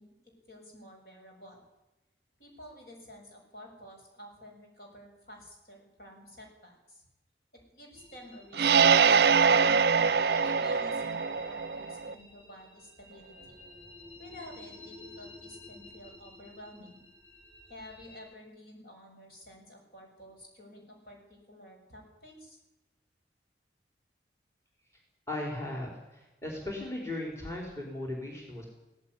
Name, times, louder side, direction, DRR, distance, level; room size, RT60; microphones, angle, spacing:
voice 1, 0.0-1.6 2.4-7.0 7.5-9.8 10.4-13.5 14.2-17.0 17.7-22.6, left 1 dB, 55° left, 0 dB, 7.1 m, -51 dB
sound 1, 7.9-18.2, left 1 dB, 30° left, 5.7 m, -52 dB
sound 2, 8.5-12.1, right 6 dB, 60° right, 0.6 m, -23 dB
voice 2, 25.3-28.7, left 1 dB, 15° left, 0 dB, 4.2 m, -37 dB
17.5 x 16.0 x 9.9 m, 0.99 s
head